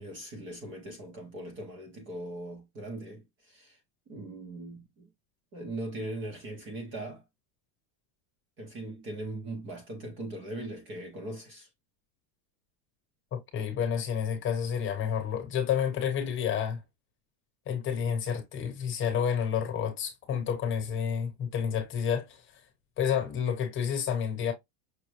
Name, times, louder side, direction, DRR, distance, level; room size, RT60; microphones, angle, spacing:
voice 1, 0.0-3.8 4.1-5.1 5.5-7.2 8.6-11.7, right 1 dB, 25° right, 0.7 m, -40 dB
voice 2, 13.3-16.8 17.7-22.4 23.0-24.5, left 8 dB, 25° left, 1.1 m, -30 dB
6.2 x 2.1 x 3.1 m
cardioid pair, 180°, 50 cm